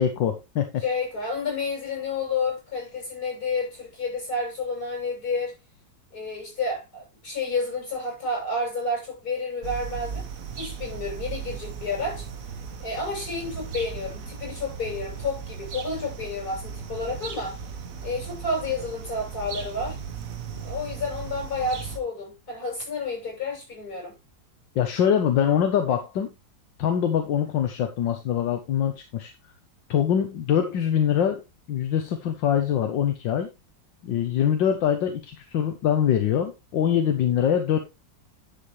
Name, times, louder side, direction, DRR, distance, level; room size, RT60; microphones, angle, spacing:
voice 1, 0.0-0.8 24.7-26.3 26.8-29.3 29.9-31.4 31.7-33.5 34.0-37.8, left 9 dB, 80° left, 1.8 m, -23 dB
voice 2, 0.8-5.6 6.1-10.2 10.5-12.3 12.8-17.6 18.0-20.0 20.6-24.2, left 3 dB, 55° left, 7.7 m, -30 dB
sound 1, 9.6-22.0, right 6 dB, 50° right, 1.5 m, -37 dB
10.5 x 7.3 x 3.1 m
omnidirectional pair, 2.0 m